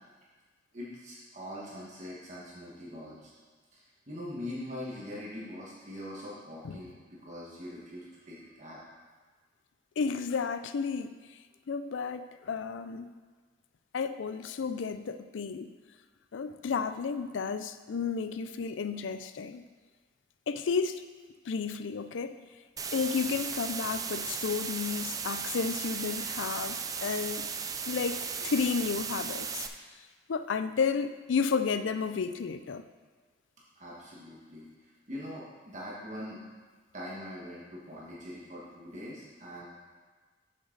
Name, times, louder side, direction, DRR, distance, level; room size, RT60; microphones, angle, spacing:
voice 1, 0.7-3.3 3.7-8.8 33.8-36.4 36.9-39.7, left 1 dB, 40° right, -6 dB, 1.5 m, -42 dB
voice 2, 10.0-11.2 11.7-13.1 13.9-15.7 16.3-19.6 20.5-21.0 21.5-22.4 22.9-27.5 27.9-29.7 30.3-32.8, left 5 dB, 90° left, 11 dB, 0.4 m, -32 dB
sound 1, 22.8-29.7, right 6 dB, 20° right, 0.3 m, -36 dB
8.0 x 6.4 x 3.9 m, 1.4 s
head